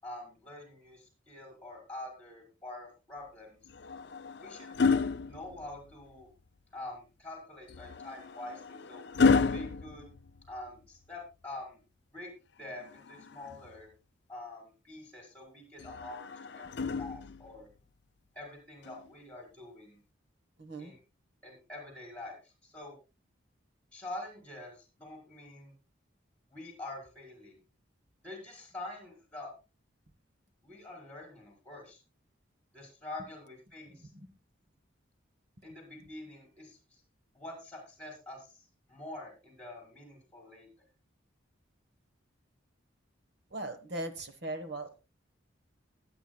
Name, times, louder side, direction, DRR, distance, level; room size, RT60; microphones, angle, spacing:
voice 1, 0.0-3.6 4.4-4.8 5.3-6.3 6.7-9.1 9.5-10.1 10.5-11.8 12.1-12.3 12.6-13.9 14.3-17.7 18.3-20.0 20.8-21.0 21.4-23.0 23.9-25.7 26.5-27.5 28.2-29.5 30.6-32.0 32.7-34.1 35.6-37.0 37.3-40.7, left 2 dB, 5° left, 0 dB, 5.0 m, -46 dB
sound 1, 3.6-6.1 7.7-10.9 12.6-13.8 15.8-17.6 18.8-19.1, left 4 dB, 55° left, 0.4 m, -31 dB
voice 2, 20.6-20.9 33.9-34.3 43.5-44.9, right 2 dB, 55° right, 7 dB, 1.3 m, -39 dB
19.5 x 9.2 x 2.3 m, 0.31 s
head